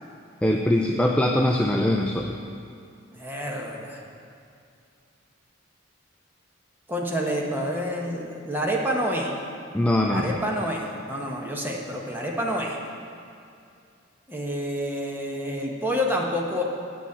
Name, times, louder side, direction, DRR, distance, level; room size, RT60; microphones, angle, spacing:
voice 1, 0.4-2.4 9.7-10.4, left 1 dB, 5° left, 0 dB, 0.4 m, -22 dB
voice 2, 3.1-4.0 6.9-9.3 10.1-12.8 14.3-16.6, equal, 10° right, -2 dB, 1.2 m, -28 dB
9.0 x 6.2 x 7.8 m, 2.5 s
head